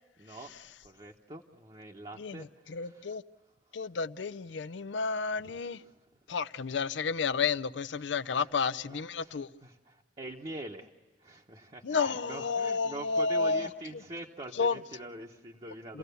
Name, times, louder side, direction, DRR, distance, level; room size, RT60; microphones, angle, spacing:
voice 1, 0.2-0.5 0.8-3.2 5.4-6.0 7.9-8.5 8.8-10.9 11.2-16.0, right 1 dB, 30° right, 1.0 m, -45 dB
voice 2, 2.2-3.2 3.7-5.8 6.3-9.5 11.8-13.7 14.6-14.8, left 5 dB, 80° left, 0.6 m, -31 dB
28.5 x 16.5 x 6.9 m
head